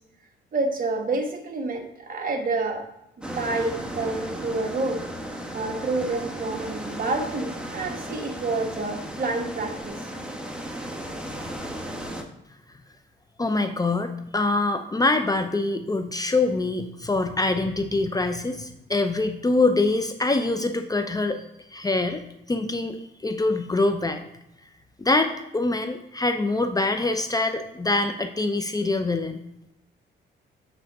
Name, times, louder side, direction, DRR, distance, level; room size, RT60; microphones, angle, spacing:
voice 1, 0.5-2.9 3.4-5.0 5.5-10.0, right 3 dB, 45° right, 4 dB, 1.3 m, -28 dB
sound 1, 3.2-12.2, right 1 dB, 5° right, 1.2 m, -35 dB
voice 2, 13.4-21.4 21.7-23.0 23.2-24.2 25.0-29.4, left 2 dB, 20° left, 7 dB, 0.6 m, -24 dB
8.0 x 3.9 x 6.2 m, 0.85 s
cardioid pair, 90°, 20 cm